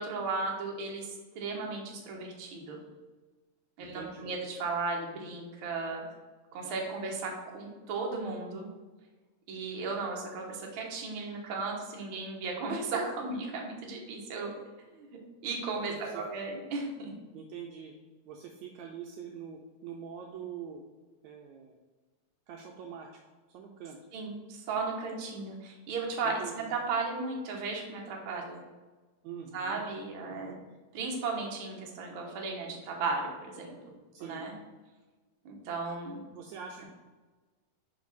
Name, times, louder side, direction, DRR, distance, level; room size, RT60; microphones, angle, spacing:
voice 1, 0.0-2.8 3.8-6.0 6.5-8.7 9.5-14.5 15.0-17.1 24.1-28.6 29.5-30.6 30.9-33.3 33.5-33.8 34.2-34.5 35.4-36.2, right 3 dB, 60° right, -1 dB, 1.4 m, -35 dB
voice 2, 3.8-4.3 15.9-16.3 17.3-17.9 18.3-20.8 21.2-21.8 22.5-23.1 23.5-24.0 26.2-26.7 29.2-29.9 30.3-30.6 34.1-34.5 36.3-36.9, right 7 dB, 80° right, 1 dB, 1.7 m, -44 dB
5.1 x 4.9 x 4.1 m, 1.3 s
omnidirectional pair, 3.6 m